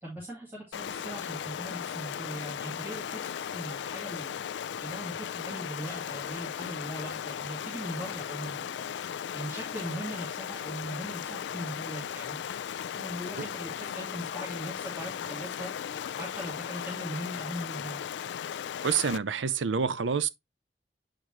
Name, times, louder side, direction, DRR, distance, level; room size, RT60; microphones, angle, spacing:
voice 1, 0.0-4.4 4.8-8.9 9.3-12.4 12.9-18.1, equal, 10° right, 2.2 m, -40 dB
Stream, 0.7-19.2, left 8 dB, 70° left, 0.3 m, -37 dB
voice 2, 18.8-20.3, right 6 dB, 85° right, 0.6 m, -27 dB
7.7 x 5.0 x 2.9 m
head